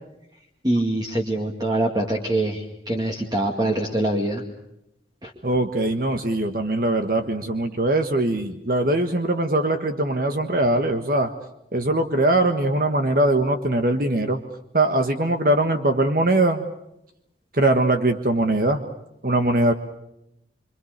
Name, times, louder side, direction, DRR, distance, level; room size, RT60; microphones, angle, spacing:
voice 1, 0.6-4.4 5.2-5.3, right 1 dB, 25° right, 1 dB, 2.2 m, -24 dB
voice 2, 5.4-11.3 11.7-14.4 14.7-16.6 17.5-18.8 19.2-19.7, right 1 dB, 50° right, 6 dB, 1.5 m, -21 dB
26.5 x 26.0 x 6.7 m, 0.84 s
head